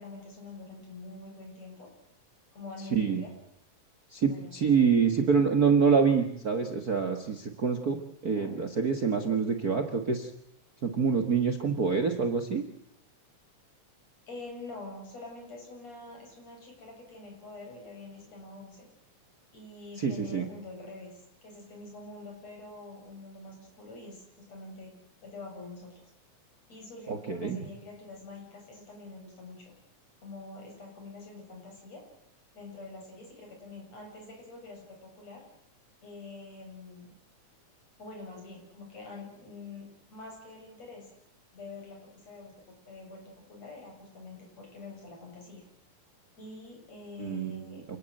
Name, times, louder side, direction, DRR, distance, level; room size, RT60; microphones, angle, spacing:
voice 1, 0.0-1.9 2.5-3.3 4.3-4.5 8.2-8.5 14.3-18.9 19.5-24.9 25.2-26.0 26.7-29.6 30.2-32.0 32.5-35.4 36.0-37.1 38.0-41.1 41.5-43.2 43.5-45.6 46.4-47.8, left 3 dB, 60° left, 0 dB, 8.6 m, -46 dB
voice 2, 2.9-3.2 4.1-8.0 8.2-10.3 10.8-12.6 20.0-20.4 27.1-27.6 47.2-47.6, right 6 dB, 40° right, 8 dB, 1.6 m, -26 dB
28.5 x 18.0 x 7.9 m, 0.72 s
omnidirectional pair, 3.4 m